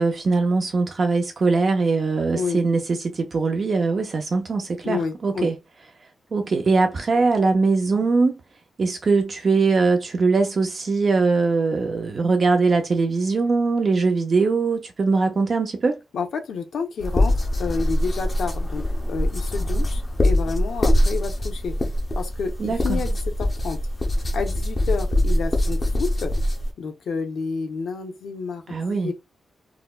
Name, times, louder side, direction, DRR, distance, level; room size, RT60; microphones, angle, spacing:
voice 1, 0.0-5.6 6.3-8.4 8.8-16.0 22.6-23.0 28.7-29.1, right 4 dB, 40° right, 0.4 m, -21 dB
voice 2, 4.8-5.5 16.1-17.3 17.6-18.8 19.1-23.8 24.3-26.3 26.8-29.1, left 5 dB, 75° left, 0.8 m, -30 dB
sound 1, 17.0-26.7, left 1 dB, 20° left, 0.6 m, -23 dB
3.9 x 2.1 x 2.2 m
wide cardioid pair, 160°, 0 cm